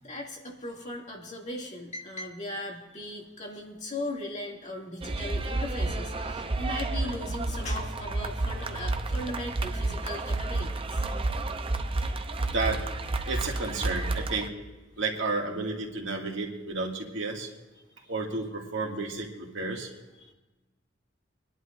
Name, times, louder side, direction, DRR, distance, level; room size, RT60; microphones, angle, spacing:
voice 1, 0.0-11.1 12.0-12.2 19.7-19.9 20.2-20.3, left 1 dB, 40° left, -2 dB, 2.4 m, -38 dB
sound 1, 5.0-14.5, right 2 dB, 30° right, 0.6 m, -31 dB
voice 2, 13.3-14.5 15.0-17.5 18.1-19.9, right 3 dB, 75° right, -1 dB, 2.1 m, -31 dB
23.0 x 11.0 x 2.6 m, 1.1 s
head